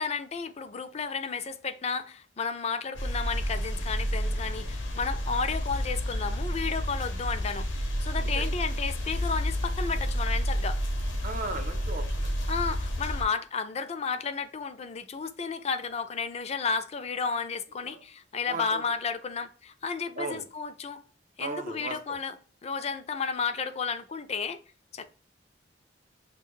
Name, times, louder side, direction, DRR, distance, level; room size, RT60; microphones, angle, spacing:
voice 1, 0.0-10.8 12.5-21.0 21.4-22.3 22.6-24.6 24.9-25.0, left 5 dB, 35° left, 0.4 m, -32 dB
sound 1, 2.9-13.2, equal, 80° left, 0.8 m, -30 dB
voice 2, 11.2-12.3 17.8-18.0 18.5-18.8 20.2-20.4 21.4-22.2, right 3 dB, 45° right, 0.6 m, -36 dB
6.3 x 2.2 x 2.2 m
head